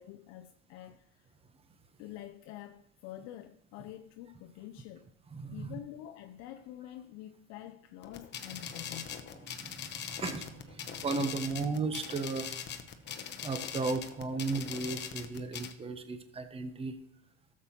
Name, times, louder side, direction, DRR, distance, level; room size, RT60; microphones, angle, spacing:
voice 1, 0.0-1.3 2.0-5.1 5.5-9.2, left 13 dB, 60° left, 0.5 m, -47 dB
voice 2, 5.3-5.8 9.5-12.6 13.4-17.0, right 3 dB, 20° right, 0.9 m, -35 dB
sound 1, 8.0-15.7, left 8 dB, 35° left, 0.9 m, -41 dB
13.5 x 7.3 x 2.9 m
supercardioid pair, 100°, 30 cm